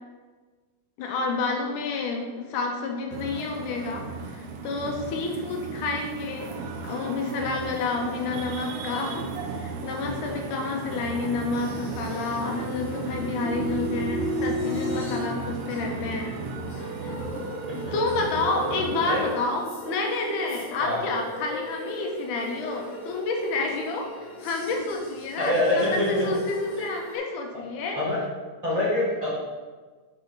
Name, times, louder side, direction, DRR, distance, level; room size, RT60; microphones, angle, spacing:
voice 1, 1.0-6.5 6.8-16.4 16.7-17.2 17.7-28.0, left 3 dB, 85° left, 2 dB, 2.4 m, -29 dB
sound 1, 3.1-19.4, right 4 dB, 90° right, 2.3 m, -35 dB
sound 2, 11.5-27.2, equal, 45° left, 1.7 m, -36 dB
voice 2, 25.4-26.3 27.9-28.2 28.6-29.3, left 1 dB, 55° right, -7 dB, 0.4 m, -25 dB
8.7 x 4.3 x 4.0 m, 1.4 s
omnidirectional pair, 3.5 m